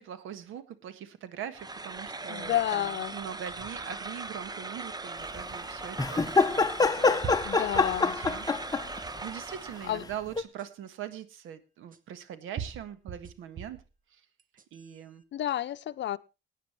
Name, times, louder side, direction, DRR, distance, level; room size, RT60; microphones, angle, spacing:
voice 1, 0.0-8.5 8.9-13.8 14.7-15.2, right 9 dB, 90° right, 1.7 m, -42 dB
sound 1, 1.5-10.0, right 3 dB, 20° right, 0.9 m, -39 dB
voice 2, 2.3-3.2 7.4-8.2 9.9-10.0 15.3-16.2, left 12 dB, 65° left, 0.8 m, -30 dB
sound 2, 5.3-5.4 6.6-6.7 7.2-8.5 9.1-9.6 10.6-10.7 11.9-12.0 12.6-13.9 14.4-15.0, right 8 dB, 45° right, 1.3 m, -41 dB
sound 3, 6.0-9.0 10.4-10.5, left 4 dB, 20° left, 1.2 m, -25 dB
18.0 x 9.4 x 4.5 m
cardioid pair, 90°, 20 cm